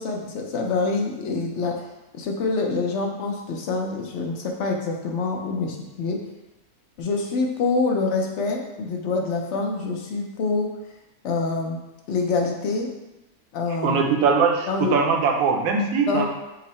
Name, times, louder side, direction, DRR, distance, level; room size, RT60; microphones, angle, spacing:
voice 1, 0.0-1.8 2.1-6.2 7.0-10.7 11.2-11.8 12.1-12.9 13.5-14.0 14.7-14.9 16.1-16.3, left 3 dB, 60° left, 1 dB, 0.8 m, -26 dB
voice 2, 13.8-16.3, right 5 dB, 70° right, 2 dB, 1.0 m, -21 dB
5.5 x 2.1 x 4.0 m, 0.99 s
omnidirectional pair, 1.6 m